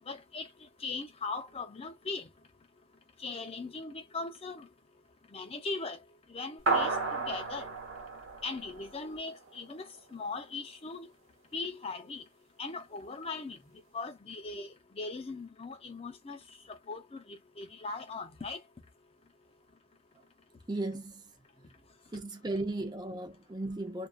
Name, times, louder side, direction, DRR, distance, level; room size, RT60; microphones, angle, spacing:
voice 1, 0.1-0.5 0.8-2.3 3.2-4.7 5.3-6.0 6.3-7.7 8.4-9.8 10.1-11.1 11.5-12.2 12.6-13.6 13.9-16.4 16.7-18.6, left 3 dB, 30° left, 0.5 m, -39 dB
sound 1, 6.7-9.4, right 3 dB, 80° right, 1.0 m, -32 dB
voice 2, 20.7-21.2 22.1-24.1, right 2 dB, 20° right, 0.5 m, -35 dB
2.4 x 2.3 x 2.3 m
head